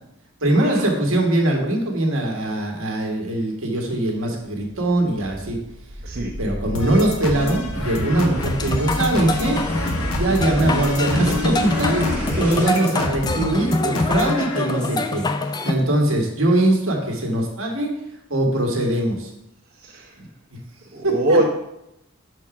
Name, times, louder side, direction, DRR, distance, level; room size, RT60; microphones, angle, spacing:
voice 1, 0.4-5.6 6.4-9.6 10.1-15.2 15.6-17.9 18.3-19.3 21.0-21.4, right 1 dB, 75° right, 1 dB, 1.6 m, -21 dB
sound 1, 5.2-12.8, equal, 10° right, 2.6 m, -30 dB
sound 2, 6.8-15.0, left 1 dB, 75° left, 1.0 m, -29 dB
sound 3, 8.4-15.7, left 2 dB, 20° left, 0.4 m, -25 dB
voice 2, 20.9-21.4, right 1 dB, 50° right, -5 dB, 1.0 m, -21 dB
5.9 x 4.5 x 5.9 m, 0.83 s
head